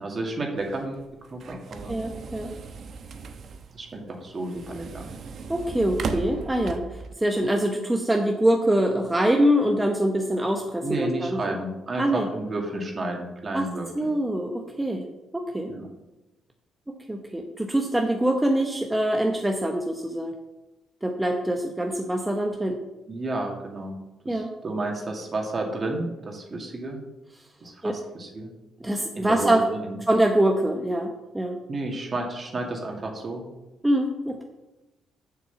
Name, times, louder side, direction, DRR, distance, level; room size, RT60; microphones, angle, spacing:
voice 1, 0.0-2.0 3.7-5.1 10.8-14.2 15.7-15.9 23.1-24.0 24.2-27.0 27.6-28.5 29.2-30.0 31.7-33.4, right 2 dB, 40° right, 1 dB, 2.2 m, -32 dB
sound 1, 0.6-7.1, right 4 dB, 60° right, 0.9 m, -37 dB
voice 2, 1.9-2.5 5.5-11.5 12.0-12.3 13.5-13.7 13.9-15.0 15.3-15.7 16.9-20.3 21.0-22.8 24.3-24.5 27.8-28.0 28.8-29.6 30.1-31.6 33.8-34.4, right 1 dB, 10° right, 2 dB, 0.9 m, -24 dB
7.3 x 6.1 x 6.9 m, 1.0 s
cardioid pair, 90°, 0 cm